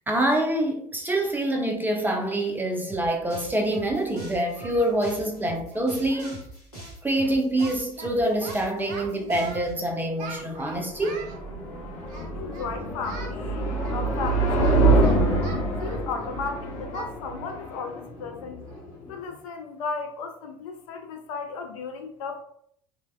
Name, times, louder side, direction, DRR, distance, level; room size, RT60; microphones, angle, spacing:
voice 1, 0.1-6.5 7.0-11.2, right 1 dB, 10° right, 0.5 m, -26 dB
sound 1, 2.9-9.7, right 1 dB, 85° left, 0.9 m, -43 dB
Singing, 2.9-3.0 3.7-4.9 5.2-5.4 5.7-5.8 6.1-6.5 6.7-6.9 7.2-8.1 8.4-9.7 10.2-11.4 12.1-12.7 13.0-13.4 13.8-16.5 16.9-17.1 17.5-17.7 18.1-18.2 18.7-18.9, right 4 dB, 55° right, 0.5 m, -42 dB
sound 2, 10.3-19.3, right 2 dB, 45° left, 0.9 m, -26 dB
voice 2, 12.3-15.3 15.8-18.6 19.1-22.4, left 5 dB, 60° left, 0.4 m, -35 dB
3.2 x 2.2 x 2.2 m
figure-of-eight pair, 60°, 19 cm